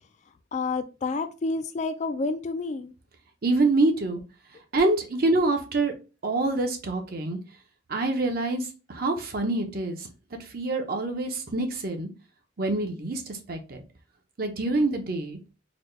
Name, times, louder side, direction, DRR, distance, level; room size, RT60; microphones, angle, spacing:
voice 1, 0.5-2.9, left 3 dB, 40° left, 0.3 m, -29 dB
voice 2, 3.4-4.2 4.7-5.9 6.2-7.4 7.9-10.1 10.5-12.1 12.6-13.8 14.4-15.4, right 2 dB, 50° right, 0.8 m, -26 dB
4.1 x 2.2 x 3.2 m
head